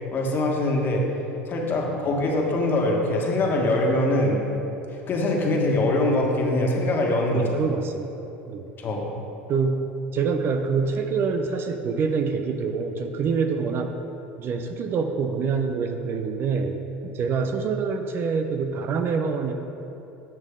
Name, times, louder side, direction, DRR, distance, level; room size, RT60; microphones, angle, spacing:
voice 1, 0.1-1.0 1.5-4.4 5.1-7.5 8.8-9.1, left 1 dB, 40° left, -1 dB, 1.7 m, -23 dB
voice 2, 7.3-8.1 8.5-8.7 9.5-9.8 10.1-13.9 14.4-16.8 17.0-19.5, right 5 dB, 45° right, 6 dB, 0.7 m, -26 dB
10.5 x 6.5 x 3.8 m, 2.9 s
hypercardioid pair, 85°, 5 cm